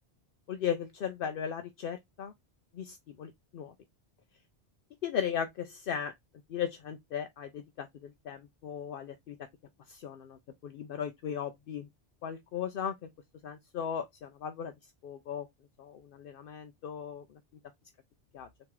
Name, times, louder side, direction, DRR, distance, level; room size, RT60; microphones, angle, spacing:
voice 1, 0.5-2.3 2.7-3.7 5.0-6.1 6.5-9.5 9.9-11.9 12.2-13.1 13.4-14.7 15.0-15.5 15.8-17.4 18.3-18.5, left 8 dB, 65° left, 0.7 m, -37 dB
3.5 x 3.0 x 4.6 m
omnidirectional pair, 1.1 m